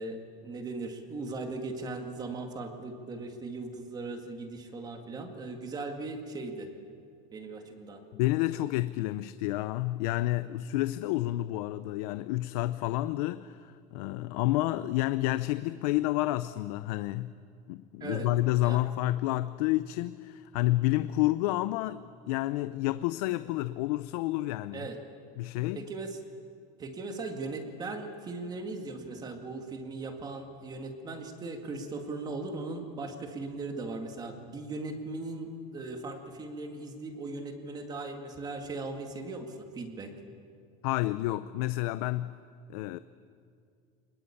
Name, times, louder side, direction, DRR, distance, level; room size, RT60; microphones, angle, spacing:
voice 1, 0.0-6.7 7.3-8.0 18.0-18.3 18.6-18.8 24.7-25.0 25.7-26.2 26.8-40.1, right 3 dB, 20° right, 2.1 m, -38 dB
voice 2, 8.1-17.4 17.7-24.9 25.4-25.9 40.8-42.4 42.7-43.0, left 17 dB, 85° left, 0.6 m, -30 dB
24.5 x 21.0 x 8.6 m
cardioid pair, 175°, 19 cm